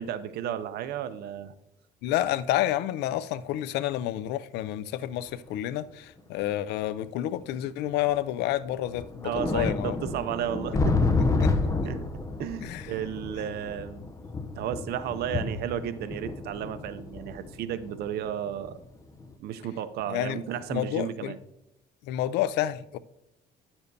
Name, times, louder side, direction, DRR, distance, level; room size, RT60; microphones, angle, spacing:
voice 1, 0.0-1.5 9.2-11.4 11.8-14.1 14.5-18.8 19.4-21.4, right 9 dB, 70° right, 0.6 m, -33 dB
voice 2, 2.0-10.0 11.4-11.5 12.6-12.8 20.1-20.4 20.7-21.3 22.1-23.0, left 13 dB, 85° left, 0.4 m, -29 dB
sound 1, 5.3-5.4 6.4-6.5 7.7-7.8 8.1-8.2 8.7-18.8 19.2-19.3, left 3 dB, 20° left, 0.6 m, -30 dB
9.9 x 7.0 x 2.7 m
cardioid pair, 110°, 17 cm